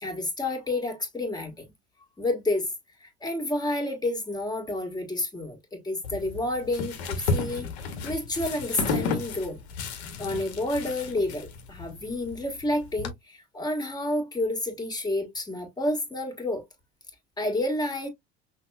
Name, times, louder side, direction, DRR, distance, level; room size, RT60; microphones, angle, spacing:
voice 1, 0.0-1.5 2.2-2.7 3.0-7.7 8.0-9.6 10.2-16.6 17.4-18.1, left 1 dB, 10° left, 1.6 m, -29 dB
sound 1, 6.0-13.1, left 4 dB, 70° left, 1.0 m, -33 dB
5.8 x 2.3 x 2.2 m
figure-of-eight pair, 70°, 34 cm